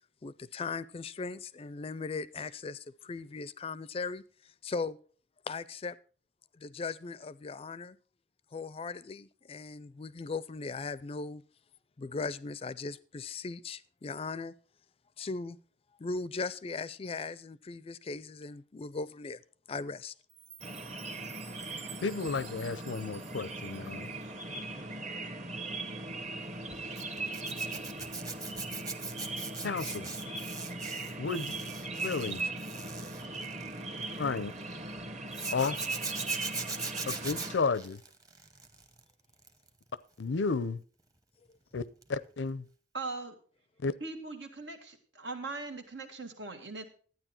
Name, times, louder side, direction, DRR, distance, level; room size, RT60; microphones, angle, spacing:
voice 1, 0.2-4.2 4.6-5.0 5.5-6.0 6.6-8.0 8.5-11.4 12.0-14.6 15.2-15.6 16.0-19.4 19.7-20.1, left 4 dB, 35° left, 0.4 m, -38 dB
Chime, 20.3-24.5, right 7 dB, 75° right, 1.3 m, -52 dB
sound 1, 20.6-37.6, right 2 dB, 40° right, 1.2 m, -39 dB
voice 2, 22.0-24.1 29.6-30.1 31.2-31.5 32.0-32.4 34.2-34.5 35.5-35.8 37.1-38.0 40.2-40.8 41.7-41.8 42.1-42.7 43.8-43.9, left 4 dB, 90° left, 0.6 m, -32 dB
Zipper (clothing), 27.0-34.4 35.3-39.0 39.3-39.7 42.0-42.2 42.4-42.5, right 4 dB, 20° right, 0.9 m, -41 dB
voice 3, 42.9-43.4 44.0-46.8, right 3 dB, 90° right, 1.9 m, -40 dB
12.0 x 9.5 x 4.3 m
head